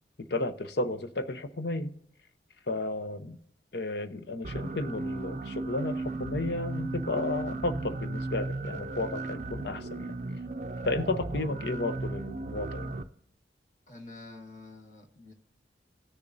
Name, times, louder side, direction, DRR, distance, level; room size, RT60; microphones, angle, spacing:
voice 1, 0.2-1.9 2.7-3.4 3.7-10.2 10.8-13.0, left 2 dB, 65° left, 0.7 m, -33 dB
sound 1, 4.4-13.0, right 2 dB, 40° right, 0.5 m, -35 dB
voice 2, 13.9-15.3, left 2 dB, 45° left, 1.7 m, -47 dB
16.5 x 6.8 x 2.6 m
head